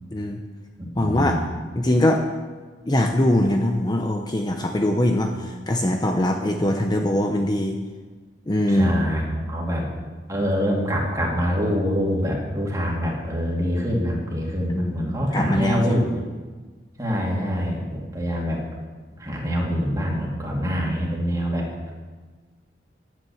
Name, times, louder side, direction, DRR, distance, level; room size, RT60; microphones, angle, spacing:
voice 1, 0.1-0.4 1.0-1.4 1.8-2.2 2.9-7.8 8.5-8.9 14.7-16.0, left 1 dB, 25° left, 3 dB, 0.8 m, -22 dB
voice 2, 0.9-1.4 5.3-5.5 8.7-9.9 10.3-16.2 17.0-18.6 19.2-21.7, equal, 20° right, -2 dB, 2.6 m, -25 dB
11.0 x 9.4 x 7.1 m, 1.4 s
head